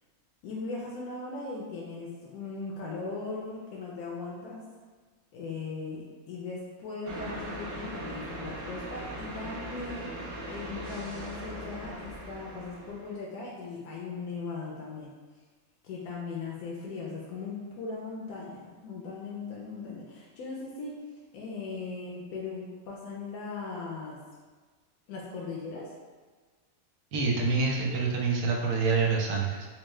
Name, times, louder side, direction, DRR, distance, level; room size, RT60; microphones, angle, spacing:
voice 1, 0.4-4.6 5.3-15.1 15.8-21.0 21.3-24.2 25.1-25.9, left 4 dB, 85° left, -4 dB, 1.1 m, -38 dB
sound 1, 7.0-13.2, right 1 dB, 65° right, 1.1 m, -40 dB
voice 2, 27.1-29.7, right 4 dB, 85° right, -1 dB, 1.1 m, -26 dB
4.4 x 2.1 x 3.1 m, 1.4 s
omnidirectional pair, 1.5 m